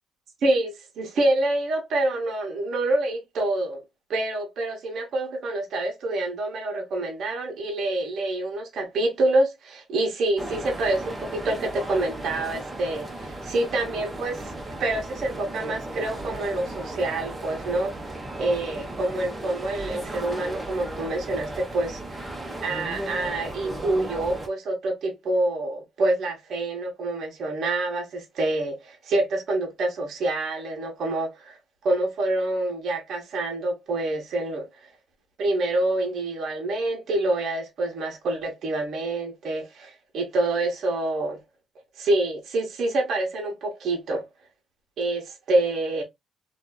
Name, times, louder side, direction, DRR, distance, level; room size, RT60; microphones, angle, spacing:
voice 1, 0.4-3.8 4.1-14.5 14.8-22.2 22.6-31.6 31.8-34.7 35.4-41.4 42.0-44.3 45.0-46.0, right 2 dB, 65° right, 1.0 m, -27 dB
sound 1, 10.4-24.5, right 1 dB, 20° right, 0.9 m, -36 dB
2.6 x 2.4 x 2.2 m
cardioid pair, 90°, 0 cm